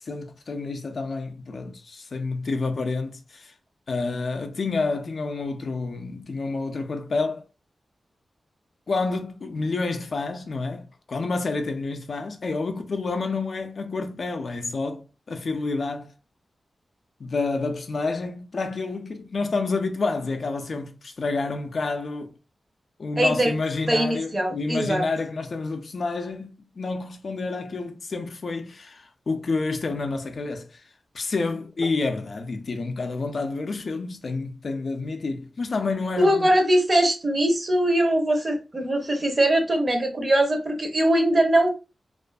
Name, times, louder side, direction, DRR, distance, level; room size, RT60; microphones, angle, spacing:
voice 1, 0.0-3.5 3.9-7.4 8.9-16.1 17.2-22.3 23.0-30.8 31.1-36.5, left 3 dB, 60° left, 0.4 m, -29 dB
voice 2, 23.2-23.5 23.9-25.0 36.2-41.7, right 1 dB, 35° right, 0.7 m, -21 dB
2.5 x 2.4 x 2.2 m
wide cardioid pair, 85°, 0 cm